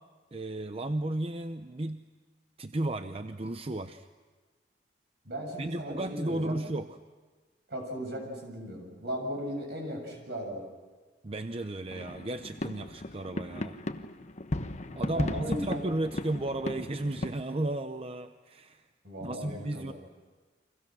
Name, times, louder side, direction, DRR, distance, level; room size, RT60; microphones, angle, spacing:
voice 1, 0.3-2.0 2.6-4.1 5.6-7.0 11.2-13.8 15.0-18.8 19.2-19.9, right 1 dB, 35° right, 8 dB, 0.7 m, -34 dB
voice 2, 5.2-6.6 7.7-10.7 15.1-15.9 19.0-19.9, equal, 65° right, 1 dB, 7.4 m, -37 dB
sound 1, 11.9-17.3, left 1 dB, 40° left, 1.0 m, -36 dB
30.0 x 25.0 x 6.2 m, 1.3 s
head